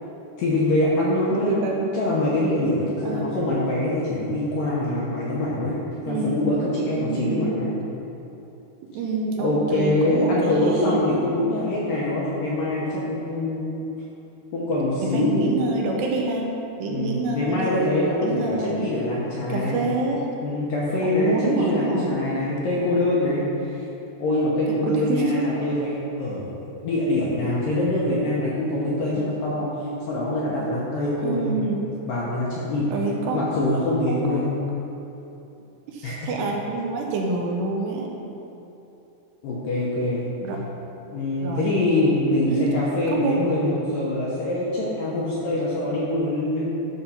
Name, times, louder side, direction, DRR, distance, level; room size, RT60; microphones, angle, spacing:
voice 1, 0.4-1.6 1.9-5.8 6.1-7.7 9.4-13.6 14.5-15.4 16.9-19.8 20.4-23.8 24.2-26.4 26.8-29.7 30.1-31.6 32.1-32.9 33.3-34.6 36.0-36.3 39.4-40.2 41.1-46.7, left 1 dB, 75° left, -6 dB, 2.1 m, -24 dB
voice 2, 1.3-1.9 3.0-3.3 6.1-6.5 7.0-7.5 8.9-11.0 15.0-16.5 16.8-17.7 18.2-18.8 19.5-20.3 21.0-22.1 24.8-25.7 31.2-31.9 32.9-33.5 34.1-34.5 35.9-38.1 40.4-40.6 41.4-42.2 42.5-42.8 43.1-43.5, right 3 dB, 80° right, 0 dB, 2.8 m, -27 dB
10.5 x 3.6 x 5.6 m, 2.9 s
omnidirectional pair, 5.0 m